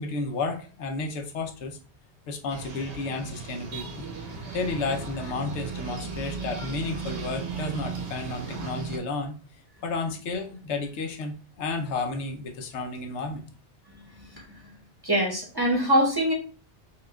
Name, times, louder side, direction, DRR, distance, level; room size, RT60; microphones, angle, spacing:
voice 1, 0.0-1.8 2.3-4.1 4.5-9.3 9.8-13.4, left 3 dB, 80° left, 5 dB, 0.9 m, -32 dB
sound 1, 2.5-9.0, right 4 dB, 80° right, 1.2 m, -36 dB
voice 2, 15.0-16.3, equal, 25° right, -2 dB, 0.8 m, -23 dB
5.5 x 2.4 x 2.2 m, 0.38 s
omnidirectional pair, 1.2 m